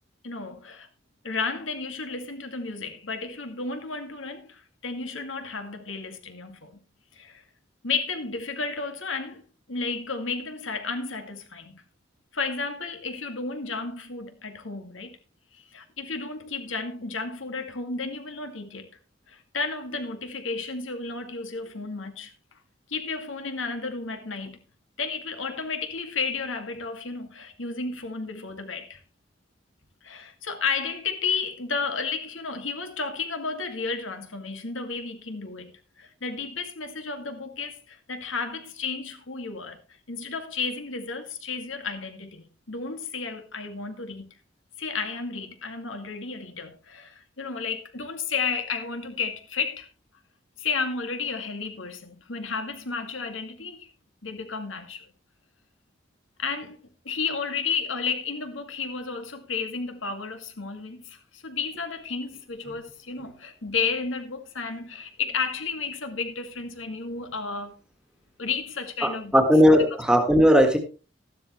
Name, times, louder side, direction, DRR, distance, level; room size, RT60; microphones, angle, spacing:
voice 1, 0.2-0.9 1.2-6.8 7.1-7.4 7.8-9.4 9.7-11.8 12.3-15.2 15.5-18.9 19.3-22.3 22.9-24.6 25.0-29.0 30.0-35.7 36.0-39.8 40.1-44.4 44.8-49.9 50.6-53.9 54.2-55.1 56.4-56.8 57.0-67.8 68.4-69.4, left 4 dB, 85° left, 2.1 m, -32 dB
voice 2, 69.0-70.8, equal, 5° right, 1.7 m, -18 dB
13.0 x 12.5 x 3.1 m
head